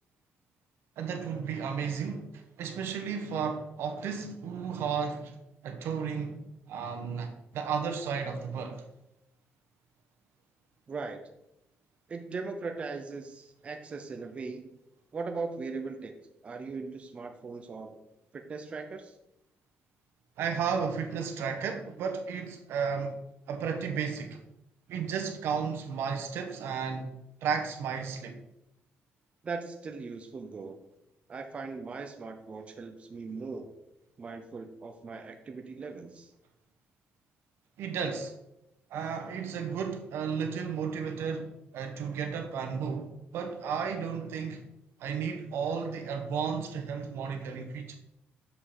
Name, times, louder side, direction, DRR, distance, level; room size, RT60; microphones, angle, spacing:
voice 1, 1.0-5.4 5.6-8.8 20.4-23.2 23.5-24.4 24.9-27.1 27.4-28.4 37.8-38.3 38.9-44.6 45.0-47.9, right 6 dB, 80° right, 1.1 m, -33 dB
voice 2, 10.9-11.2 12.1-14.7 15.1-16.1 16.4-18.0 18.3-19.2 29.4-30.8 31.3-33.7 34.2-36.3, right 4 dB, 30° right, 0.7 m, -39 dB
6.8 x 5.4 x 4.3 m
cardioid pair, 145°, 4 cm